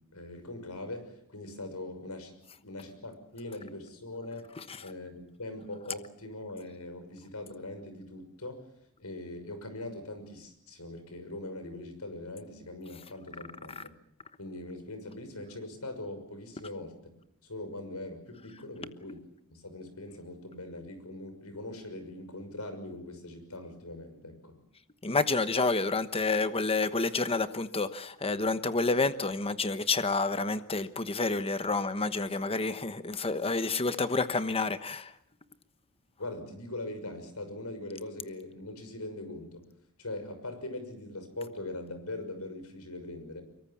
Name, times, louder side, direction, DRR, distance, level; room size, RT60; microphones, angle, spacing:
voice 1, 0.0-4.5 4.8-8.7 9.0-14.0 14.4-17.0 17.4-24.6 36.2-39.7 40.0-43.4, left 2 dB, 90° left, 6.2 m, -41 dB
voice 2, 25.0-35.1, left 3 dB, 25° left, 1.1 m, -29 dB
25.0 x 23.0 x 7.4 m
head